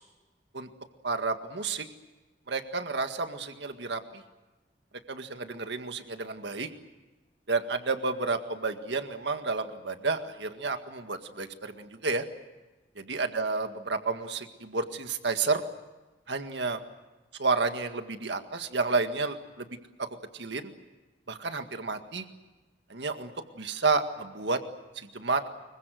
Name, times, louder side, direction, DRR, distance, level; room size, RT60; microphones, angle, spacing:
voice 1, 1.0-1.9 2.5-4.2 5.1-6.7 7.5-12.3 13.0-15.6 16.3-16.8 17.4-19.7 20.3-20.7 21.3-22.3 22.9-23.3 23.6-24.6 25.0-25.4, right 4 dB, 75° right, 7 dB, 1.9 m, -31 dB
25.5 x 23.5 x 7.8 m, 1.2 s
head